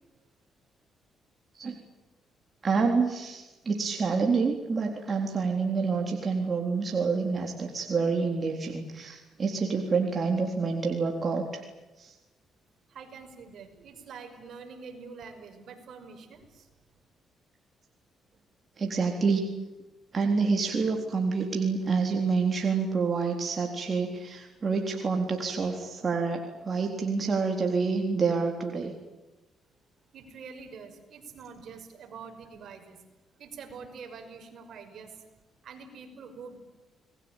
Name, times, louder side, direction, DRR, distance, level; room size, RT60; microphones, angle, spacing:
voice 1, 2.6-11.6 12.0-12.2 18.8-19.4 20.1-28.9, right 4 dB, 40° right, 2 dB, 3.8 m, -28 dB
voice 2, 12.9-16.7 30.1-33.0 33.4-35.2 35.6-36.6, right 5 dB, 65° right, 6 dB, 5.7 m, -45 dB
29.0 x 21.0 x 9.1 m, 1.1 s
cardioid pair, 90°, 0 cm